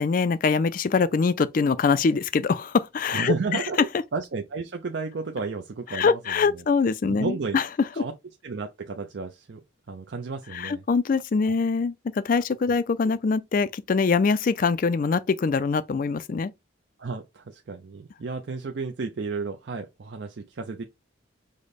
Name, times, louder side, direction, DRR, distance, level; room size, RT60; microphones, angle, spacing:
voice 1, 0.0-3.6 5.9-7.7 8.0-8.1 10.5-16.5, left 5 dB, 40° left, 0.3 m, -23 dB
voice 2, 3.1-6.6 7.0-7.6 7.9-8.1 8.4-9.6 9.9-10.8 11.4-11.6 13.0-13.1 17.0-20.8, right 4 dB, 55° right, 0.5 m, -32 dB
5.0 x 2.1 x 4.0 m
head